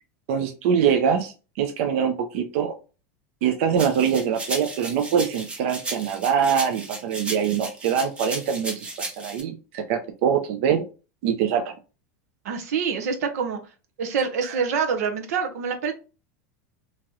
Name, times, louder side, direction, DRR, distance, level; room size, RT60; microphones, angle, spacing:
voice 1, 0.3-2.7 3.4-8.8 9.2-10.8 11.2-11.7 14.4-14.6, right 7 dB, 50° right, 5 dB, 0.5 m, -23 dB
sound 1, 3.8-9.4, right 2 dB, 15° right, 0.7 m, -34 dB
voice 2, 12.4-13.6 14.0-15.9, right 6 dB, 85° right, 6 dB, 0.9 m, -26 dB
3.8 x 2.9 x 2.9 m, 0.33 s
supercardioid pair, 175°, 8 cm